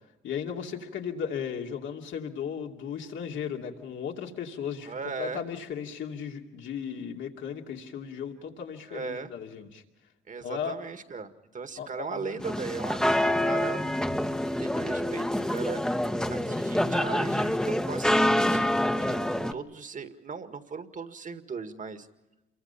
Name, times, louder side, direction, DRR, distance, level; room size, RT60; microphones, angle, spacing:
voice 1, 0.2-4.9 5.2-9.8 10.4-10.8 11.8-12.4, left 7 dB, 75° left, 2 dB, 2.7 m, -36 dB
voice 2, 4.9-5.5 8.9-9.3 10.3-13.9 14.6-15.8 16.3-22.1, right 5 dB, 40° right, 8 dB, 1.9 m, -38 dB
sound 1, 12.4-19.5, left 1 dB, 5° left, 1.1 m, -26 dB
28.0 x 23.0 x 5.7 m, 1.0 s
cardioid pair, 90°, 20 cm